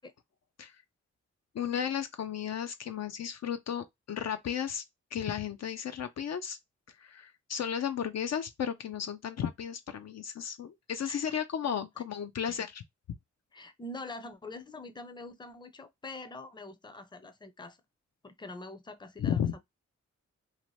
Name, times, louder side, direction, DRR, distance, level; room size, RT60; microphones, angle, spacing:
voice 1, 1.5-4.8 5.1-6.6 6.9-12.8 19.2-19.5, left 8 dB, 60° left, 0.5 m, -34 dB
voice 2, 11.0-11.4 12.4-12.6 13.5-17.8 18.2-19.6, left 2 dB, 15° left, 0.6 m, -45 dB
2.8 x 2.1 x 3.1 m
cardioid pair, 50°, 30 cm